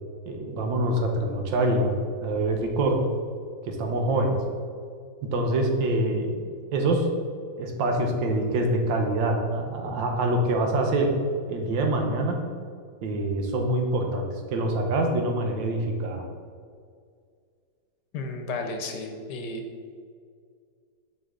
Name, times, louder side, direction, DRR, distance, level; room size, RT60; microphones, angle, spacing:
voice 1, 0.3-1.9 2.2-3.0 3.6-4.4 5.3-6.4 6.7-7.1 7.6-11.1 11.5-12.4 13.0-16.3, right 1 dB, 85° right, 3 dB, 1.6 m, -25 dB
voice 2, 18.1-19.6, left 3 dB, 70° left, 4 dB, 1.3 m, -33 dB
6.2 x 5.4 x 3.8 m, 2.1 s
omnidirectional pair, 2.0 m